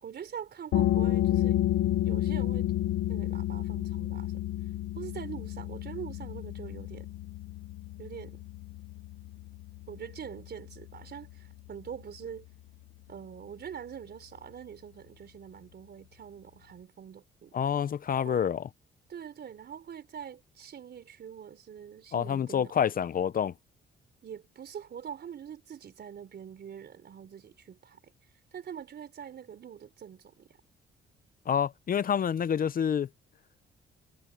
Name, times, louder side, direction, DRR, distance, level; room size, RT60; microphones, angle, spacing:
voice 1, 0.0-1.6 2.1-2.7 3.1-4.4 4.9-7.1 8.0-8.4 9.9-12.5 13.1-17.5 18.2-18.5 19.1-22.7 24.2-28.0 28.5-30.5, right 8 dB, 55° right, 4.1 m, -44 dB
sound 1, 0.7-12.1, left 13 dB, 80° left, 0.9 m, -31 dB
voice 2, 17.5-18.7 22.1-23.5 31.5-33.1, left 8 dB, 45° left, 0.7 m, -28 dB
cardioid pair, 90°, 20 cm